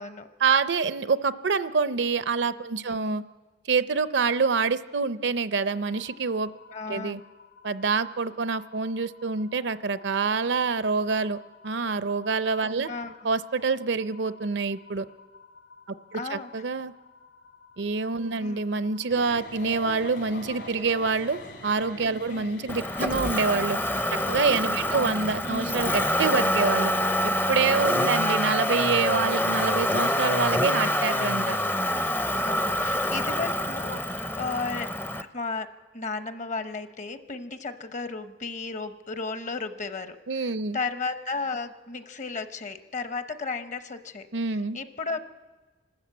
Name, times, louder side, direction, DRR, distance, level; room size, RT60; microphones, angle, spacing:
voice 1, 0.4-3.2 3.7-6.5 6.9-7.2 7.6-11.4 11.6-12.9 13.2-15.0 16.1-16.9 17.8-23.8 24.3-26.9 27.2-31.6 40.3-40.8 44.3-44.8, right 4 dB, 70° right, 14 dB, 0.6 m, -26 dB
voice 2, 2.9-3.2 6.7-7.2 12.9-13.1 16.1-16.5 18.4-18.6 22.3-22.5 24.9-25.1 28.0-28.5 32.4-34.9 35.3-45.2, left 4 dB, 40° left, 10 dB, 0.9 m, -34 dB
sound 1, 5.5-21.6, left 4 dB, 90° left, 4.3 m, -53 dB
sound 2, 19.1-26.1, left 1 dB, 70° left, 4.2 m, -40 dB
Motor vehicle (road), 22.7-35.2, left 1 dB, 10° left, 0.5 m, -26 dB
26.5 x 13.0 x 8.4 m, 1.3 s
head